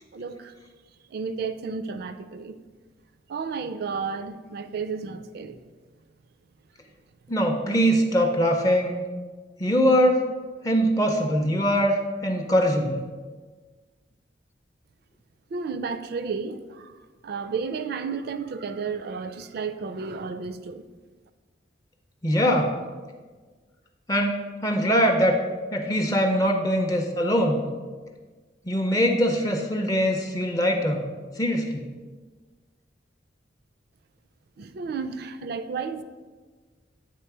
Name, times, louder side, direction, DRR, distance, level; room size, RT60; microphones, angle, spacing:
voice 1, 0.1-0.5 1.1-2.6 3.3-5.6 15.5-20.8 34.6-36.0, right 5 dB, 55° right, 11 dB, 0.4 m, -32 dB
voice 2, 7.3-9.0 9.6-10.2 10.6-13.0 22.2-22.7 24.1-25.4 25.7-27.7 28.7-31.0 31.4-31.9, equal, 20° left, 3 dB, 0.4 m, -22 dB
8.2 x 3.2 x 4.7 m, 1.4 s
head